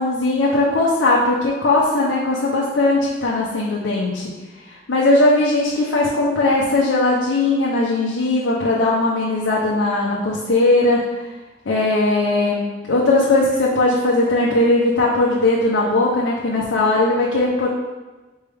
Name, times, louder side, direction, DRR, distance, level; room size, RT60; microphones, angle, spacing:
voice 1, 0.0-4.3 4.6-11.0 11.7-17.7, left 2 dB, 85° left, -5 dB, 0.6 m, -18 dB
4.4 x 3.4 x 3.4 m, 1.2 s
head